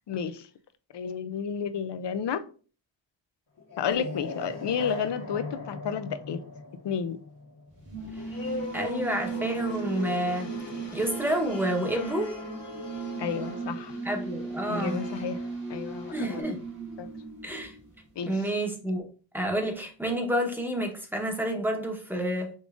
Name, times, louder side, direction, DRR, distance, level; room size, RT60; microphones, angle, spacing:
voice 1, 0.1-0.5 0.9-2.4 3.8-6.4 6.8-7.2 13.2-14.0 14.7-15.4 15.7-16.4 17.0-17.1 18.2-18.4, left 7 dB, 65° left, 0.6 m, -31 dB
sound 1, 3.6-14.8, left 2 dB, 90° left, 1.4 m, -40 dB
sound 2, 7.7-18.1, right 4 dB, 50° right, 1.9 m, -38 dB
sound 3, 8.1-16.4, left 1 dB, 45° left, 1.4 m, -45 dB
voice 2, 8.7-10.5 10.9-12.3 14.0-15.0 16.1-16.6 17.4-17.8 18.3-19.1 19.3-22.5, right 1 dB, 5° right, 1.0 m, -29 dB
5.3 x 3.7 x 2.5 m
wide cardioid pair, 110°, 46 cm